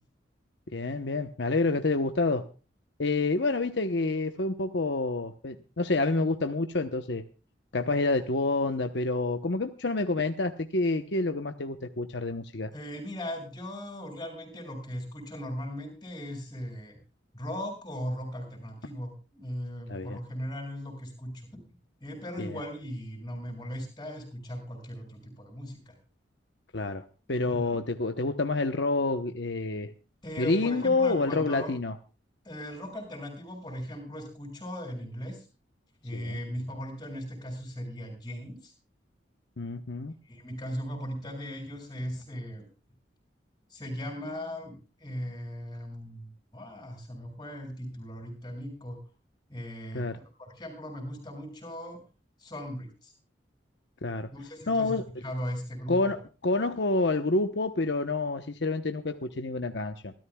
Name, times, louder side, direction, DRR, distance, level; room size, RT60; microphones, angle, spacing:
voice 1, 0.7-2.4 3.0-7.2 7.7-12.7 19.9-20.2 22.4-22.6 26.7-29.9 30.4-31.9 36.1-36.4 39.6-40.1 49.9-50.2 54.0-54.3 54.7-55.0 55.9-60.1, left 3 dB, 70° left, 6 dB, 1.0 m, -28 dB
voice 2, 12.7-17.0 17.3-21.6 22.0-25.9 27.5-27.8 30.2-31.7 32.4-35.5 36.0-38.7 40.3-42.7 43.7-49.0 49.5-52.0 52.4-53.1 54.3-56.1, equal, 20° left, 3 dB, 6.5 m, -38 dB
27.0 x 13.5 x 2.3 m, 0.34 s
head